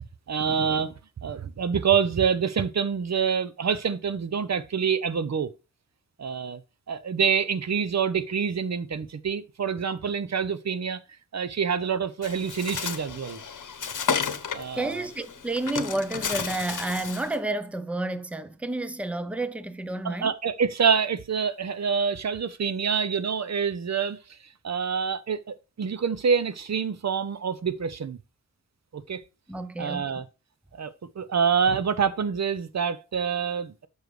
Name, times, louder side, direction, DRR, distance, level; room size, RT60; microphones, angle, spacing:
voice 1, 0.3-0.9 1.2-5.5 6.2-6.6 6.9-11.0 11.3-13.4 14.5-15.1 20.0-24.4 24.6-28.2 28.9-29.2 29.8-30.2 30.8-33.7, right 6 dB, 55° right, 0.7 m, -26 dB
Bird, 12.2-17.3, left 6 dB, 65° left, 0.9 m, -32 dB
voice 2, 14.7-20.3 29.5-30.1, right 2 dB, 5° right, 0.5 m, -30 dB
7.0 x 6.4 x 3.2 m
wide cardioid pair, 115°, 33 cm